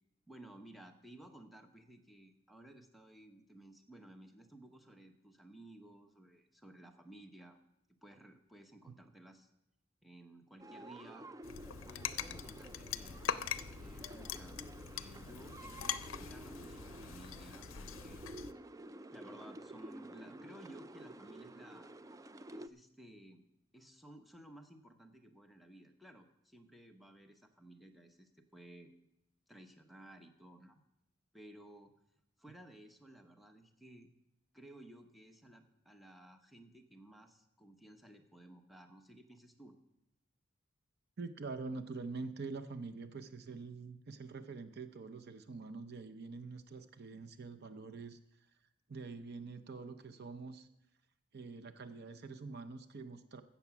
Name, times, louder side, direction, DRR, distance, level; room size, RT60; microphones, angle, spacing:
voice 1, 0.3-7.6 8.0-9.5 10.0-11.3 11.9-13.2 13.8-14.6 14.9-18.2 19.1-21.9 22.5-23.4 23.7-28.9 29.5-30.8 31.3-31.9 32.4-34.1 34.5-39.8, right 1 dB, ahead, 5 dB, 1.0 m, -56 dB
sound 1, 10.6-22.7, right 1 dB, 15° right, 0.3 m, -51 dB
sound 2, 11.4-18.5, left 8 dB, 75° left, 0.5 m, -43 dB
voice 2, 41.2-48.2 48.9-50.7 51.3-53.4, right 4 dB, 50° right, 10 dB, 0.6 m, -45 dB
15.5 x 7.2 x 5.9 m, 0.84 s
head